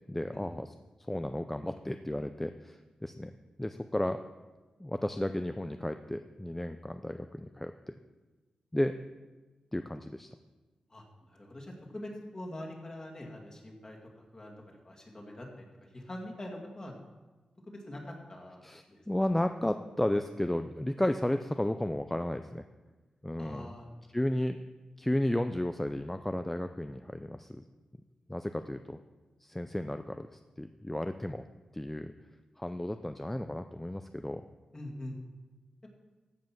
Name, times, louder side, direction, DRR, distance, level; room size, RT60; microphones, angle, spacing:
voice 1, 0.1-0.7 1.1-3.3 3.6-4.2 4.8-8.0 8.7-8.9 9.7-10.3 18.6-22.6 23.2-23.7 24.1-24.6 25.0-27.6 28.3-29.0 29.4-31.4 31.7-32.1 32.6-34.4, left 1 dB, 10° left, 8 dB, 0.4 m, -33 dB
voice 2, 10.9-14.5 14.8-15.7 15.9-17.0 17.7-19.0 23.4-24.0 34.7-35.2, left 1 dB, 30° left, -1 dB, 2.3 m, -44 dB
14.5 x 5.4 x 6.0 m, 1.2 s
wide cardioid pair, 85°, 2 cm